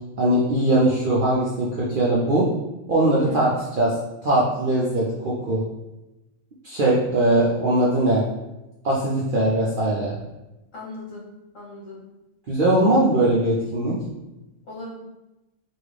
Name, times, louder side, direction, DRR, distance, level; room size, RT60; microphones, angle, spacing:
voice 1, 0.2-2.5 2.9-3.9 4.2-5.6 6.6-8.2 8.8-10.2 12.5-14.0, right 1 dB, 60° right, -6 dB, 0.5 m, -20 dB
voice 2, 10.7-11.3 11.5-12.0 14.7-14.9, left 2 dB, 70° left, -6 dB, 1.6 m, -37 dB
3.5 x 2.3 x 3.2 m, 1.0 s
omnidirectional pair, 1.4 m